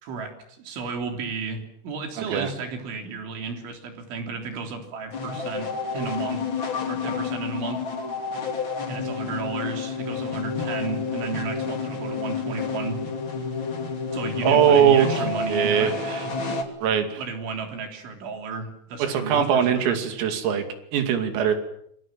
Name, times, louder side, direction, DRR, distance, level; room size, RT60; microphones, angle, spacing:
voice 1, 0.0-6.4 6.9-7.8 8.9-13.0 14.1-16.0 17.2-20.1, right 4 dB, 65° right, 4 dB, 5.8 m, -33 dB
sound 1, 5.1-16.6, left 5 dB, 30° left, 2.7 m, -30 dB
voice 2, 14.4-15.1 15.5-16.2 16.8-17.2 19.0-20.6 20.9-21.5, right 8 dB, 85° right, 7 dB, 5.3 m, -21 dB
27.0 x 24.0 x 7.6 m, 0.71 s
omnidirectional pair, 5.9 m